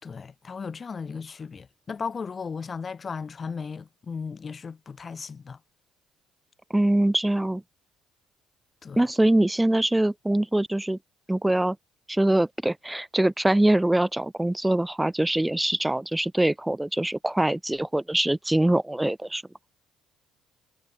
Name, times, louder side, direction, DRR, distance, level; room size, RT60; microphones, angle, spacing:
voice 1, 0.0-5.6 8.8-9.1, left 5 dB, 35° left, 6.3 m, -36 dB
voice 2, 6.7-7.6 9.0-11.0 11.3-11.8 12.1-19.4, right 1 dB, 10° right, 2.4 m, -23 dB
supercardioid pair, 70°, 0 cm